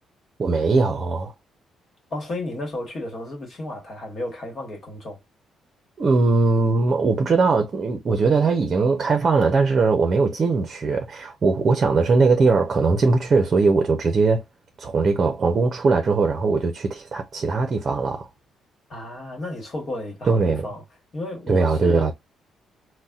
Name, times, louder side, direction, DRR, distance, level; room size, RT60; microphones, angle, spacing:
voice 1, 0.4-1.3 6.0-14.4 14.8-18.3 20.3-20.6 21.5-22.1, right 4 dB, 45° right, 0.6 m, -20 dB
voice 2, 2.1-5.2 18.9-20.8 21.1-22.1, left 1 dB, 45° left, 1.4 m, -33 dB
4.0 x 2.2 x 2.3 m
cardioid pair, 90°, 0 cm